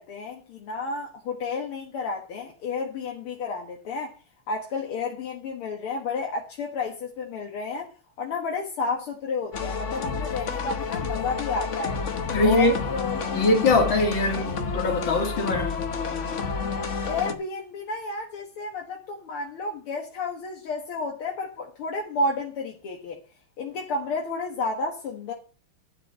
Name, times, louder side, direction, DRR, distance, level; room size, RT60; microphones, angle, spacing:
voice 1, 0.0-4.1 4.5-7.9 8.2-12.0 12.4-13.5 14.3-14.6 17.0-23.2 23.6-25.3, left 3 dB, 75° left, 2.4 m, -31 dB
sound 1, 9.5-17.3, left 4 dB, 40° left, 1.2 m, -30 dB
voice 2, 12.3-12.8 13.3-15.8, left 2 dB, 60° left, 3.2 m, -22 dB
11.5 x 5.2 x 7.3 m
omnidirectional pair, 2.4 m